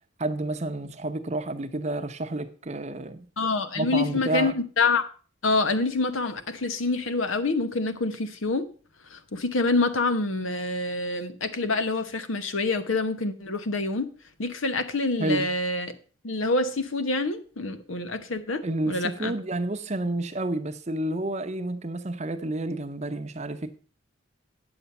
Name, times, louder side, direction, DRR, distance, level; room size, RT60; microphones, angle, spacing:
voice 1, 0.2-3.3 3.7-4.5 15.2-15.5 18.6-23.8, right 2 dB, 35° right, 0.7 m, -30 dB
voice 2, 3.4-5.0 5.4-8.7 9.1-14.1 14.4-15.9 16.2-19.3, left 3 dB, 80° left, 1.0 m, -26 dB
9.5 x 7.1 x 5.4 m
head